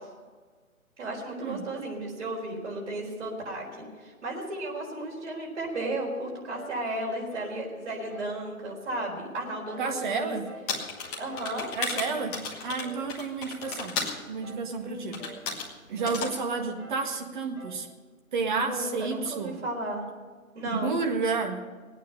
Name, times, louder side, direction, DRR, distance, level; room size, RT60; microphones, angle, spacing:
voice 1, 1.0-10.4 11.2-11.7 14.8-15.2 18.6-20.0 20.5-21.0, right 1 dB, 50° right, -2 dB, 4.3 m, -34 dB
sound 1, 5.7-6.0 6.5-6.8 7.3-7.6 8.1-8.4 8.9-9.2 9.7-10.0 10.5-10.8 11.2-11.5 12.0-12.3 12.8-13.1 13.6-13.9 14.4-14.7 15.2-15.5 16.0-16.3 16.8-17.1 17.6-17.9, right 2 dB, 10° right, 1.9 m, -46 dB
voice 2, 9.8-10.5 11.8-14.0 14.3-15.2 15.9-17.9 18.3-19.6 20.7-21.6, right 4 dB, 35° right, 4 dB, 1.7 m, -30 dB
sound 2, 10.7-14.2 15.1-15.7 16.1-16.4, left 4 dB, 15° left, 1.3 m, -34 dB
18.5 x 9.2 x 6.6 m, 1.5 s
figure-of-eight pair, 145°, 43 cm